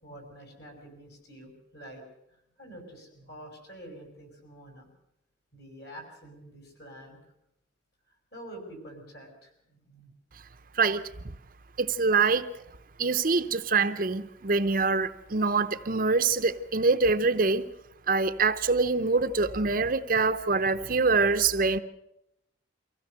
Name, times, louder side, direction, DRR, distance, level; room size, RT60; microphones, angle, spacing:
voice 1, 0.0-2.0 2.6-4.9 5.5-7.2 8.3-10.1 13.1-13.2, right 1 dB, 55° left, 5.9 m, -47 dB
voice 2, 11.8-12.5 13.0-17.7 18.1-21.8, right 4 dB, 45° right, 0.7 m, -25 dB
24.0 x 16.0 x 6.7 m
head